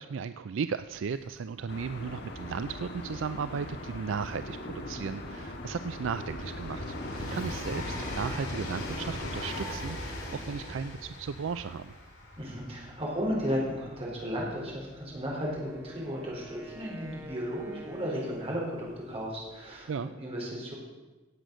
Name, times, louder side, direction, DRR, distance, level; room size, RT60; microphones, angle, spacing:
voice 1, 0.0-12.0 19.9-20.1, right 6 dB, 65° right, 12 dB, 0.4 m, -35 dB
Train, 1.0-1.1 1.3-17.9 18.9-19.0, left 1 dB, 80° left, 4.4 m, -41 dB
sound 1, 1.7-9.7, left 1 dB, 55° left, 1.8 m, -41 dB
voice 2, 12.4-20.7, equal, 30° right, -3 dB, 4.4 m, -34 dB
Wind instrument woodwind instrument, 15.1-19.3, equal, 15° right, 1.4 m, -49 dB
17.0 x 7.8 x 6.4 m, 1.2 s
head